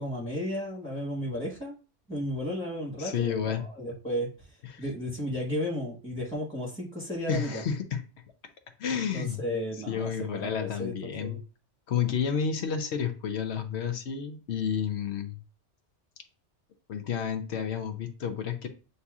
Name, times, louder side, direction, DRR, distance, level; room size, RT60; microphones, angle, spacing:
voice 1, 0.0-1.7 2.1-4.3 4.8-7.6 9.1-11.4, equal, 5° left, -3 dB, 1.1 m, -33 dB
voice 2, 3.0-3.6 4.7-4.8 7.3-8.0 8.8-9.4 9.9-11.4 11.9-15.4 16.9-18.7, left 7 dB, 65° left, 7 dB, 0.9 m, -30 dB
7.8 x 2.7 x 2.4 m, 0.36 s
omnidirectional pair, 1.2 m